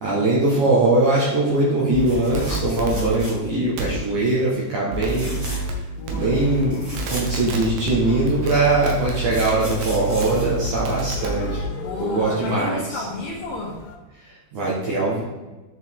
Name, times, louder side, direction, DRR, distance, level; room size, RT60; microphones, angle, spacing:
voice 1, 0.0-5.4 6.1-11.6 12.0-13.0 14.2-15.2, right 2 dB, 75° right, -6 dB, 1.8 m, -21 dB
sound 1, 1.9-3.2 3.8-3.9 4.9-5.7 6.1-6.7 7.0-11.6, right 3 dB, 90° right, 3.8 m, -28 dB
sound 2, 2.0-3.7 4.0-4.3 5.0-5.8 6.2-6.3 6.5-8.0 8.8-11.3 13.2-13.4 13.7-13.8, equal, 45° right, 0.6 m, -38 dB
voice 2, 5.9-6.4 11.7-13.8, left 2 dB, 70° left, -4 dB, 2.5 m, -31 dB
sound 3, 6.3-14.0, left 5 dB, 90° left, 3.4 m, -38 dB
10.5 x 5.0 x 3.7 m, 1.2 s
omnidirectional pair, 6.0 m